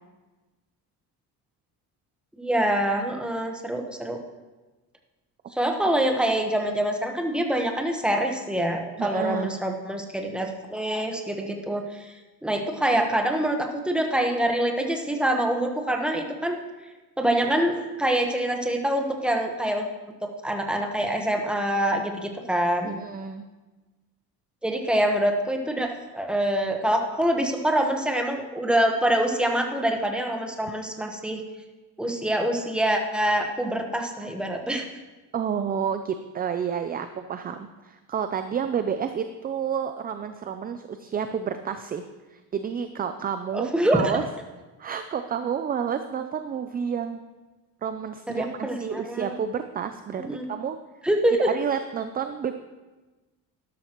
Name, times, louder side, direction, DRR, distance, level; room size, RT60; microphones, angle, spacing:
voice 1, 2.4-4.2 5.5-12.1 12.4-16.6 17.2-19.9 20.2-23.0 24.6-31.4 32.0-34.9 43.5-44.2 48.3-49.3 50.3-50.5 51.0-51.5, right 1 dB, 5° right, 2 dB, 1.1 m, -25 dB
voice 2, 9.0-9.5 12.9-13.1 22.8-23.4 35.3-42.0 42.3-44.3 44.8-47.2 47.8-50.8 51.5-52.5, right 7 dB, 25° right, 8 dB, 0.4 m, -30 dB
12.5 x 12.5 x 3.0 m, 1.2 s
cardioid pair, 145°, 38 cm